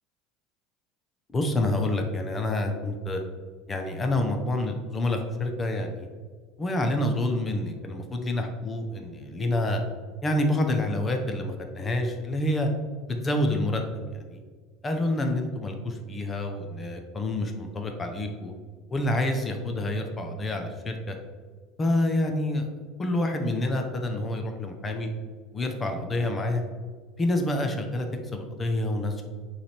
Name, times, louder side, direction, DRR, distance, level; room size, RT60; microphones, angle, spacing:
voice 1, 1.3-3.2 3.7-6.1 6.6-9.8 10.2-12.7 13.1-14.4 14.8-18.5 18.9-21.2 21.8-22.7 23.0-25.1 25.5-26.6 27.2-29.2, left 1 dB, 15° left, 4 dB, 0.6 m, -28 dB
8.8 x 3.3 x 4.2 m, 1.5 s
cardioid pair, 175°, 0 cm